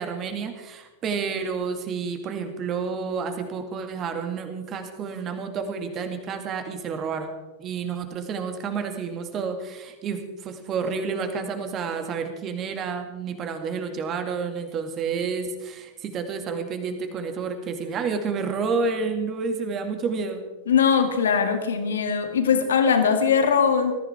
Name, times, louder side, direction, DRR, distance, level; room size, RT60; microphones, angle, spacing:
voice 1, 0.0-7.3 7.6-20.4, right 5 dB, 30° right, 6 dB, 2.2 m, -30 dB
voice 2, 20.7-23.9, left 6 dB, 65° left, 7 dB, 1.9 m, -21 dB
20.5 x 14.5 x 3.6 m, 1.2 s
figure-of-eight pair, 90°, 0 cm